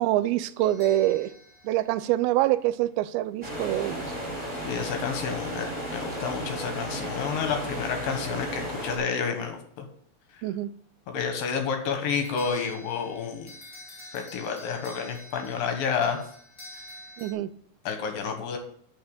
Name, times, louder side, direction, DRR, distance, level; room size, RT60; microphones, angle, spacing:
voice 1, 0.0-1.3 1.6-4.2 10.4-10.7 17.2-17.5, right 14 dB, 85° right, 2.4 m, -25 dB
sound 1, 0.6-2.9 12.1-17.3, left 1 dB, 15° left, 2.2 m, -48 dB
sound 2, 3.4-9.0, equal, 10° right, 4.4 m, -34 dB
voice 2, 4.6-9.9 10.3-10.4 11.1-13.5 14.1-16.2 17.8-18.6, left 6 dB, 75° left, 2.9 m, -30 dB
10.5 x 5.7 x 6.7 m
omnidirectional pair, 4.3 m